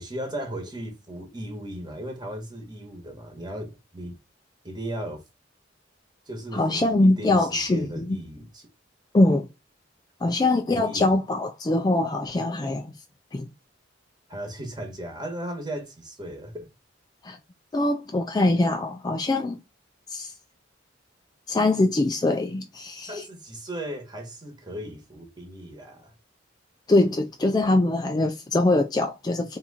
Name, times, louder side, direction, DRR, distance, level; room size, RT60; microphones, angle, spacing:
voice 1, 0.0-4.2 4.6-5.2 6.3-8.7 10.7-11.1 14.3-16.7 23.0-26.1, right 1 dB, 20° right, 1.2 m, -36 dB
voice 2, 6.5-8.2 9.1-9.5 10.2-13.0 13.3-13.5 17.2-17.4 17.7-19.6 20.1-20.3 21.5-23.2 26.9-29.6, left 2 dB, 20° left, 0.3 m, -23 dB
3.6 x 2.9 x 4.1 m
head